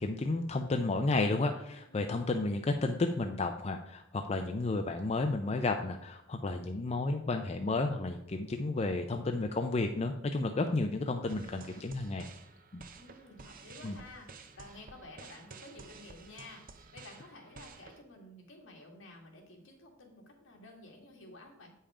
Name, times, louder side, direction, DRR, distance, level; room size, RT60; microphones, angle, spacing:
voice 1, 0.0-12.2 12.7-12.8 13.8-14.0, left 2 dB, 30° left, 5 dB, 0.5 m, -32 dB
sound 1, 11.3-18.0, right 4 dB, 45° right, 0.7 m, -52 dB
voice 2, 12.9-21.7, left 2 dB, 65° left, 0 dB, 2.1 m, -52 dB
8.6 x 5.5 x 4.9 m, 0.81 s
head